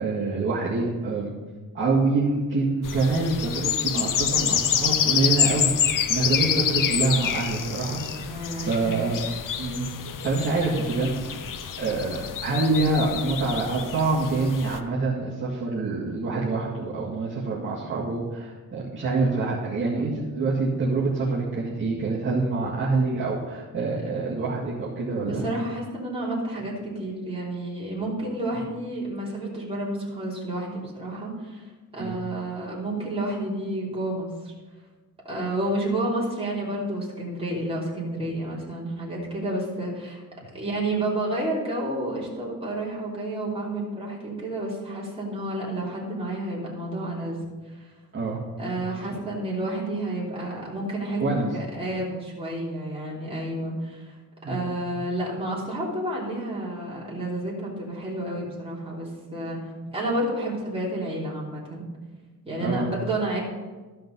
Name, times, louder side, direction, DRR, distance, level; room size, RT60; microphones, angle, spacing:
voice 1, 0.0-1.3 1.7-8.4 8.7-9.3 9.6-9.9 10.2-11.4 11.8-25.4 32.0-32.2 48.1-48.8 51.2-51.5 54.4-54.6 54.9-55.0 59.7-59.8 62.6-62.9, right 3 dB, 30° right, -9 dB, 2.1 m, -26 dB
sound 1, 2.8-14.8, left 8 dB, 60° left, 0.7 m, -27 dB
voice 2, 8.1-8.9 25.2-31.6 31.9-34.5 35.3-40.2 40.5-47.4 48.6-54.2 54.5-59.6 59.9-61.9 62.4-63.4, right 1 dB, 15° right, -6 dB, 3.2 m, -30 dB
13.5 x 5.7 x 5.4 m, 1.3 s
wide cardioid pair, 140°, 37 cm